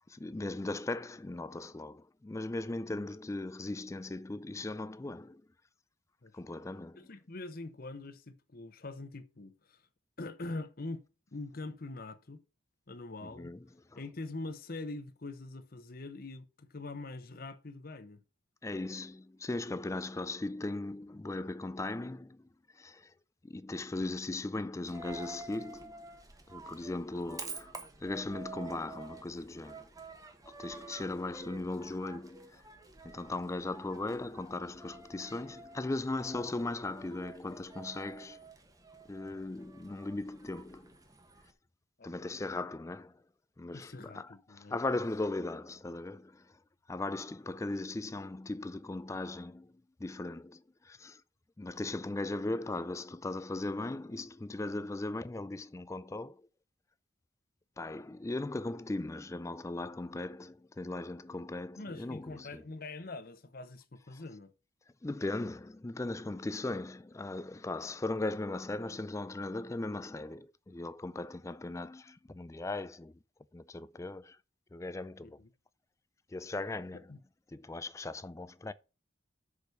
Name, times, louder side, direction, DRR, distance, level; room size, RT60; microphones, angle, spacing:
voice 1, 0.1-5.4 6.3-7.1 13.2-13.7 18.6-22.4 22.8-23.1 23.4-26.0 26.5-27.7 28.0-29.9 30.5-32.6 33.0-38.4 39.1-40.9 42.0-43.1 43.6-46.5 46.9-49.7 50.0-51.2 51.6-56.4 57.8-62.6 64.1-64.2 65.0-73.1 73.5-74.4 74.7-75.4 76.3-77.0 77.5-78.7, left 2 dB, 15° left, 0.3 m, -38 dB
voice 2, 7.0-9.8 10.2-12.4 12.9-13.5 14.0-18.2 42.0-42.4 43.7-45.0 61.8-64.5 75.2-75.5 76.9-77.2, left 2 dB, 50° left, 0.9 m, -44 dB
Coin (dropping), 24.9-41.5, right 3 dB, 20° right, 1.1 m, -50 dB
6.5 x 4.9 x 6.6 m
head